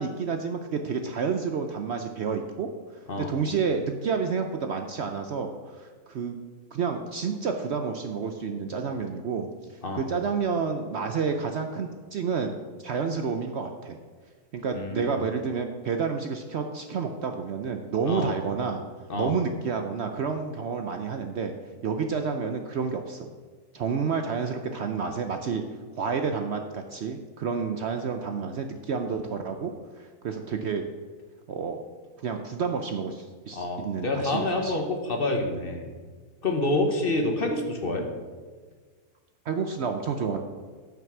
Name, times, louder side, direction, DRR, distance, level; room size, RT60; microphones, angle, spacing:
voice 1, 0.0-2.7 3.2-6.4 6.7-9.5 10.0-14.0 14.5-18.8 19.2-21.5 21.8-23.3 23.7-25.6 25.9-30.9 31.5-31.8 32.2-34.8 39.5-40.4, right 5 dB, 60° right, 5 dB, 0.8 m, -30 dB
voice 2, 14.7-15.2 18.1-18.3 19.1-19.3 33.5-35.9 36.4-38.1, left 2 dB, 40° left, 3 dB, 1.2 m, -27 dB
9.1 x 5.9 x 6.0 m, 1.5 s
omnidirectional pair, 1.5 m